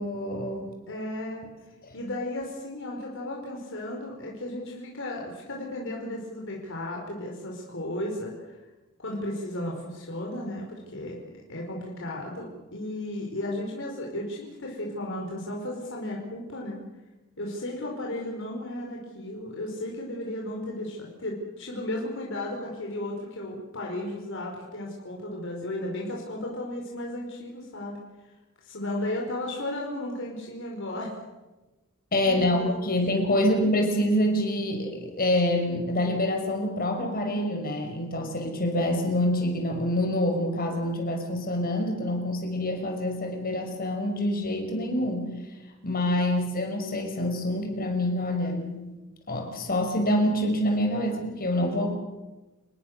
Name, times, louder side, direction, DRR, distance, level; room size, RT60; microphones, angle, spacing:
voice 1, 0.0-0.7 1.8-1.9 32.1-45.3 45.8-48.8 49.3-51.9, left 1 dB, 45° left, 3 dB, 5.6 m, -26 dB
voice 2, 0.9-1.4 1.9-8.6 9.0-11.2 11.5-16.8 17.4-28.0 28.7-31.1 32.2-32.8, left 1 dB, 60° left, -1 dB, 5.2 m, -34 dB
29.5 x 20.5 x 6.9 m, 1.1 s
head